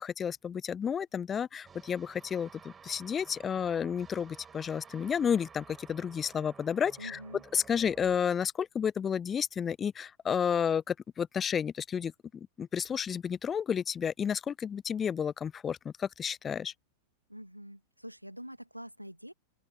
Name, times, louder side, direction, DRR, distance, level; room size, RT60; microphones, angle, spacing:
voice 1, 0.0-7.2 7.5-16.7, left 7 dB, 20° left, 0.4 m, -31 dB
sound 1, 1.6-8.2, right 6 dB, 20° right, 6.1 m, -54 dB
voice 2, 7.0-7.4 17.3-19.3, equal, 90° right, 2.6 m, -45 dB
open air
figure-of-eight pair, 90°, 0 cm